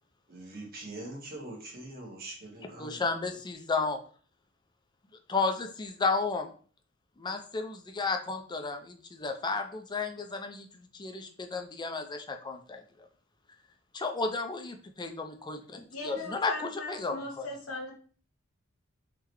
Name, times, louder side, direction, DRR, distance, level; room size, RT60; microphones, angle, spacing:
voice 1, 0.3-3.0, right 2 dB, 45° right, -2 dB, 1.4 m, -43 dB
voice 2, 2.8-4.0 5.3-6.5 7.2-12.8 14.0-15.8 16.0-17.5, left 4 dB, 20° left, 5 dB, 0.5 m, -33 dB
voice 3, 15.8-17.9, left 2 dB, 85° left, 0 dB, 1.4 m, -39 dB
3.7 x 3.2 x 3.0 m, 0.42 s
head